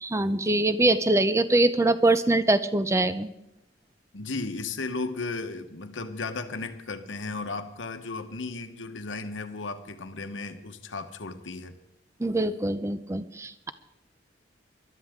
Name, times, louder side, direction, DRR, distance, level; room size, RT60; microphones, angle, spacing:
voice 1, 0.0-3.3 12.2-13.7, right 2 dB, 15° right, 12 dB, 0.5 m, -23 dB
voice 2, 4.1-11.7, left 3 dB, 85° left, 8 dB, 1.1 m, -35 dB
21.0 x 12.0 x 3.6 m, 0.85 s
head